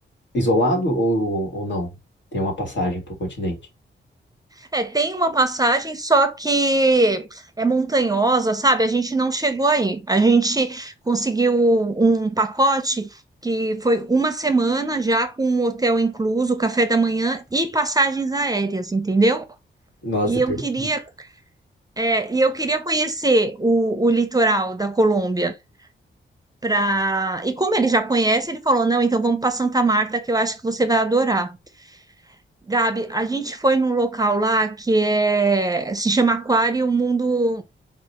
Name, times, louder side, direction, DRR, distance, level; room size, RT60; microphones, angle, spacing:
voice 1, 0.3-1.9 2.3-3.6 20.0-20.9, equal, 65° left, 1.8 m, -23 dB
voice 2, 4.7-13.1 13.4-19.4 20.3-21.3 22.0-25.5 26.6-31.6 32.7-37.6, right 2 dB, 20° right, 0.6 m, -20 dB
4.8 x 2.4 x 4.1 m
wide cardioid pair, 130°, 20 cm